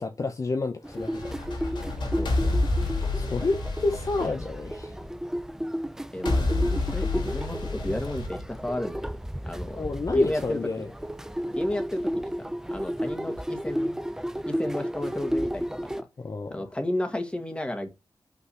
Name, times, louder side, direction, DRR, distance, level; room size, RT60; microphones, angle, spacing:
voice 1, 0.0-1.6 3.1-4.9 9.7-10.9 16.2-16.7, left 3 dB, 45° left, 0.8 m, -30 dB
sound 1, 0.8-16.0, equal, 5° right, 0.5 m, -33 dB
sound 2, 1.0-5.1 6.3-9.1, left 2 dB, 85° left, 3.0 m, -29 dB
voice 2, 2.2-2.6 6.1-9.2 9.4-9.8 10.1-10.8 11.5-14.0 14.5-15.7 16.0-16.1 16.5-17.9, left 1 dB, 15° left, 1.9 m, -33 dB
5.7 x 3.9 x 5.6 m
cardioid pair, 70°, 8 cm